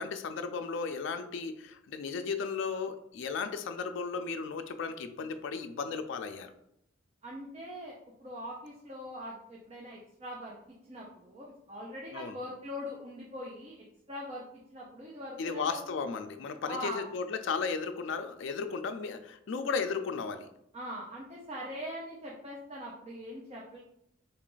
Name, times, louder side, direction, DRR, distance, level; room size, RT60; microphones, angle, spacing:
voice 1, 0.0-6.5 12.1-12.4 15.4-20.5, left 5 dB, 65° left, 8 dB, 0.4 m, -35 dB
voice 2, 7.2-10.6 10.9-13.7 14.1-14.4 14.7-15.8 16.7-17.0 20.7-23.8, equal, 30° right, -3 dB, 0.6 m, -42 dB
3.8 x 2.4 x 3.8 m, 0.77 s
head